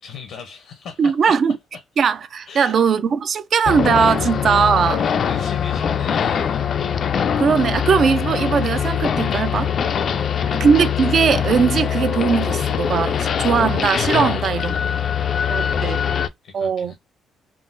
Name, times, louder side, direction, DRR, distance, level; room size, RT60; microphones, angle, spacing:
voice 1, 0.0-1.3 2.5-3.0 4.2-4.3 5.0-6.8 10.1-10.6 14.2-16.9, left 6 dB, 80° left, 0.7 m, -38 dB
voice 2, 1.0-1.6 2.0-5.0 7.4-9.7 10.5-14.7 15.5-16.0 16.5-16.9, right 6 dB, 55° right, 0.4 m, -19 dB
sound 1, 3.7-16.3, left 8 dB, 55° left, 0.3 m, -22 dB
3.7 x 2.0 x 2.5 m
cardioid pair, 90°, 0 cm